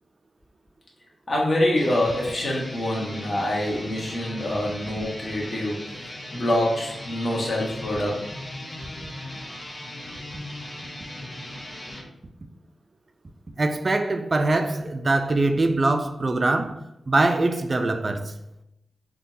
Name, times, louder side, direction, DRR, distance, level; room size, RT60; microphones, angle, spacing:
voice 1, 1.3-5.8 6.1-8.2, left 1 dB, 55° left, 1.0 m, -25 dB
sound 1, 1.7-12.1, left 1 dB, 25° left, 1.1 m, -38 dB
voice 2, 13.6-18.3, right 2 dB, 40° right, 0.3 m, -23 dB
3.7 x 2.3 x 2.6 m
cardioid pair, 80°, 0 cm